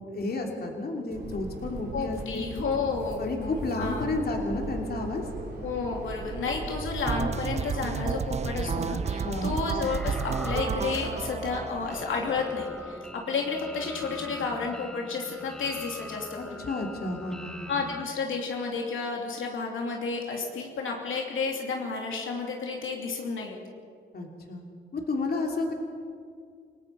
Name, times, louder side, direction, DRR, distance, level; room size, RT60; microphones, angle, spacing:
voice 1, 0.1-2.5 3.2-5.2 9.2-9.6 16.4-17.8 24.1-24.6 24.9-25.7, left 2 dB, 50° left, 1 dB, 3.0 m, -31 dB
sound 1, 1.1-11.3, right 3 dB, 55° right, 3.5 m, -37 dB
voice 2, 1.9-4.1 5.6-16.6 17.7-23.6, left 4 dB, 90° left, 1 dB, 2.9 m, -31 dB
sound 2, 7.1-13.0, right 6 dB, 35° right, 0.4 m, -32 dB
sound 3, 9.8-18.0, left 1 dB, 5° left, 0.7 m, -42 dB
28.5 x 18.0 x 5.6 m, 2.2 s
wide cardioid pair, 120°, 20 cm